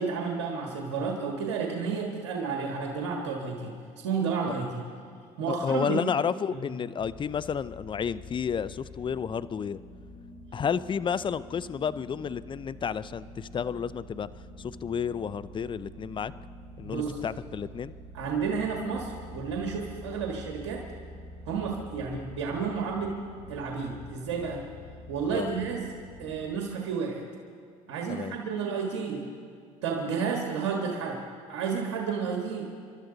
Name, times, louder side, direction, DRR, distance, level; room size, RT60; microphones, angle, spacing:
voice 1, 0.0-3.8 4.0-4.8 5.4-6.1 6.5-6.7 16.8-17.2 18.1-20.9 21.5-23.2 23.5-24.6 25.1-25.9 26.2-27.2 27.9-29.3 29.8-31.2 31.5-32.7, right 5 dB, 90° right, 0 dB, 1.7 m, -31 dB
voice 2, 5.5-9.8 10.5-14.3 14.6-16.3 16.8-17.9 25.3-25.5 28.1-28.4, left 7 dB, 30° left, 16 dB, 0.6 m, -31 dB
sound 1, 7.0-26.6, left 1 dB, 65° left, 3.5 m, -47 dB
28.0 x 12.5 x 4.0 m, 2.3 s
supercardioid pair, 80°, 16 cm